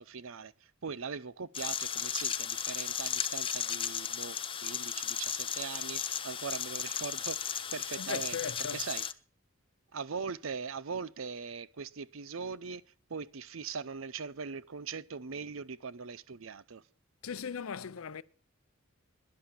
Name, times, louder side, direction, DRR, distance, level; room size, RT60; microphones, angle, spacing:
voice 1, 0.0-8.4 8.7-9.0 9.9-12.8 13.1-16.8, right 5 dB, 75° right, 0.7 m, -41 dB
sound 1, 1.5-9.1, left 8 dB, 25° left, 0.6 m, -35 dB
voice 2, 8.0-8.8 17.2-18.2, left 6 dB, 90° left, 0.6 m, -38 dB
11.0 x 10.5 x 7.3 m
head